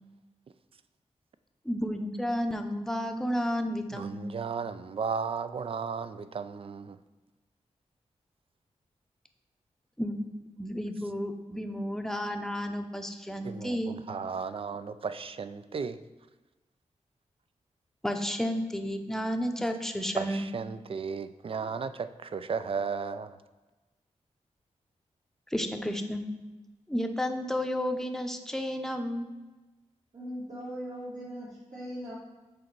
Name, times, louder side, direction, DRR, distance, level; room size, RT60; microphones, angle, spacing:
voice 1, 1.6-4.3 10.0-10.2 10.6-14.0 18.0-20.5 25.5-26.2 26.9-29.3, equal, 5° left, 5 dB, 0.7 m, -32 dB
voice 2, 3.9-7.0 13.4-16.0 20.2-23.4, right 5 dB, 50° right, 12 dB, 0.4 m, -35 dB
voice 3, 30.1-32.2, equal, 80° right, -9 dB, 2.1 m, -39 dB
6.4 x 4.1 x 4.6 m, 1.2 s
cardioid pair, 65°, 12 cm